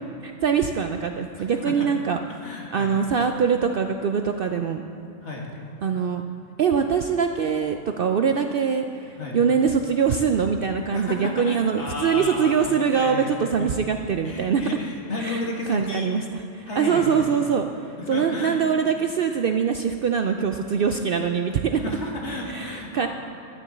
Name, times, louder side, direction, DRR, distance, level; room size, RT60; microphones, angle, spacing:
voice 1, 0.2-2.2 2.7-4.8 5.8-6.2 6.6-14.6 15.2-21.8 22.5-23.1, right 6 dB, 60° right, 6 dB, 0.6 m, -23 dB
voice 2, 1.4-1.7 2.4-2.9 5.2-5.4 9.2-9.4 10.9-13.7 14.2-16.1 16.7-17.3 18.0-18.6 21.8-23.1, left 2 dB, 60° left, -2 dB, 2.1 m, -33 dB
12.0 x 6.9 x 8.3 m, 2.6 s
omnidirectional pair, 1.3 m